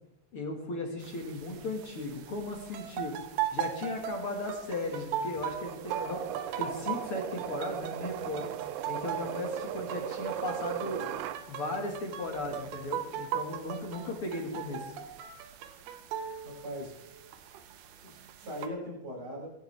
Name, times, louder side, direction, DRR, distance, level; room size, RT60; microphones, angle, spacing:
voice 1, 0.3-3.1 3.5-6.3 6.6-8.5 8.9-11.0 11.5-14.9, left 2 dB, 55° left, 1 dB, 1.5 m, -36 dB
sound 1, 1.0-18.7, right 9 dB, 70° right, 2.7 m, -39 dB
sound 2, 5.6-11.4, right 11 dB, 90° right, 3.0 m, -37 dB
voice 2, 16.4-16.9 18.0-19.5, equal, 20° right, -5 dB, 6.2 m, -40 dB
24.0 x 12.0 x 3.4 m, 0.84 s
omnidirectional pair, 5.3 m